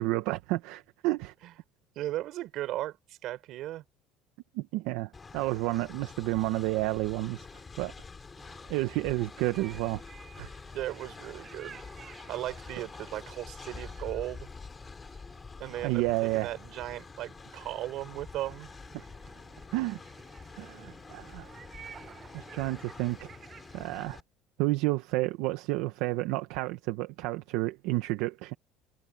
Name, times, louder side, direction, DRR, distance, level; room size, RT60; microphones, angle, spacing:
voice 1, 0.0-1.3 4.5-7.5 7.8-7.9 8.7-10.0 10.4-10.5 15.8-16.5 18.9-19.0 19.7-20.0 20.6-21.5 22.3-23.3 23.7-24.2 24.6-28.5, right 19 dB, 80° right, 1.0 m, -30 dB
voice 2, 2.0-3.8 10.7-11.8 12.3-14.5 15.6-18.7, right 15 dB, 55° right, 5.3 m, -37 dB
Train, 5.1-24.2, left 4 dB, 20° left, 4.6 m, -47 dB
sound 1, 8.3-24.1, right 7 dB, 30° right, 7.2 m, -54 dB
cardioid pair, 140°, 0 cm